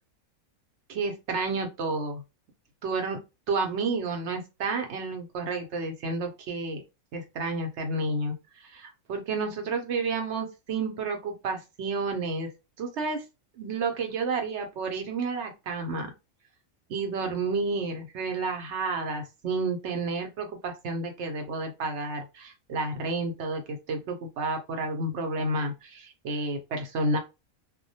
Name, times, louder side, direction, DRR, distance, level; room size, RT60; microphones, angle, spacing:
voice 1, 0.9-2.2 2.8-3.2 3.5-6.8 7.1-12.5 12.8-13.2 13.6-16.1 16.9-27.2, right 3 dB, 65° right, 4 dB, 0.8 m, -31 dB
2.3 x 2.1 x 2.7 m, 0.26 s
omnidirectional pair, 1.4 m